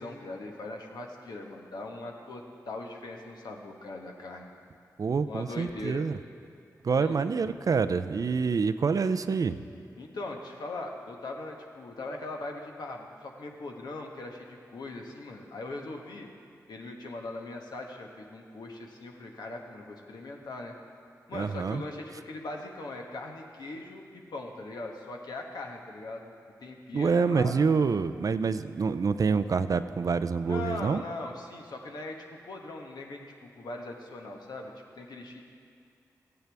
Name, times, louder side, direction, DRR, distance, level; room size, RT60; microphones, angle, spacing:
voice 1, 0.0-4.5 5.3-6.1 6.9-7.2 10.0-16.3 16.7-20.7 21.3-26.3 26.6-27.5 30.5-35.4, left 2 dB, 75° left, 1 dB, 1.2 m, -40 dB
voice 2, 5.0-6.2 6.8-9.6 21.3-21.8 26.9-31.0, right 5 dB, 55° right, 11 dB, 0.4 m, -27 dB
15.0 x 9.1 x 3.5 m, 2.3 s
cardioid pair, 40°, 7 cm